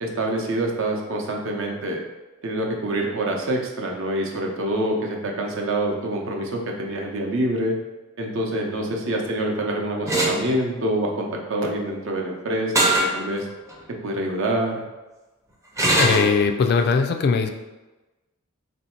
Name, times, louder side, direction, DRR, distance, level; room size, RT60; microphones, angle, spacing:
voice 1, 0.0-2.0 2.4-7.8 8.2-12.7 13.1-13.5 14.0-14.8, right 1 dB, 65° right, 0 dB, 0.6 m, -26 dB
sound 1, 10.1-10.4 12.8-13.1 13.7-13.8 15.8-16.3, right 1 dB, 15° right, 0.5 m, -19 dB
voice 2, 16.0-17.5, left 5 dB, 50° left, 5 dB, 0.3 m, -20 dB
3.1 x 2.6 x 4.3 m, 1.1 s
head